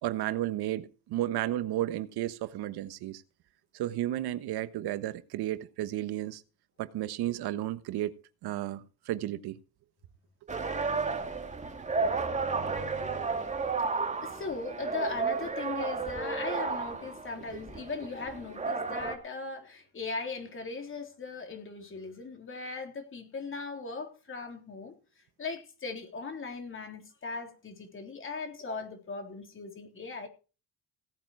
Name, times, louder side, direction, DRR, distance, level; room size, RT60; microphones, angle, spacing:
voice 1, 0.0-3.2 3.7-6.4 6.8-8.1 8.4-9.6, right 13 dB, 85° right, 1.3 m, -33 dB
sound 1, 10.5-19.2, right 4 dB, 20° right, 2.1 m, -32 dB
voice 2, 13.9-24.9 25.4-30.3, left 4 dB, 35° left, 3.7 m, -39 dB
17.5 x 8.9 x 4.7 m
cardioid pair, 140°, 37 cm